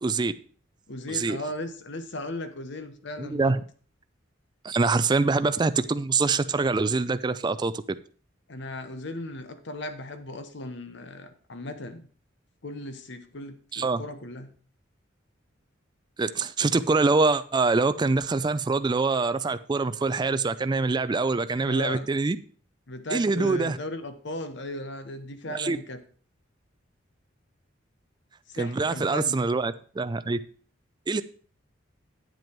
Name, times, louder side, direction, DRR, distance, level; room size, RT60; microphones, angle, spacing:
voice 1, 0.0-0.3 1.1-1.4 3.2-3.6 4.6-7.8 13.7-14.0 16.2-22.4 23.1-23.8 25.5-25.8 28.6-30.4 31.1-31.2, right 3 dB, 20° right, 0.4 m, -24 dB
voice 2, 0.9-3.6 8.5-12.1 12.6-14.5 21.7-22.1 22.9-26.0 28.6-29.4, left 1 dB, 65° left, 1.1 m, -37 dB
9.2 x 7.9 x 4.6 m
head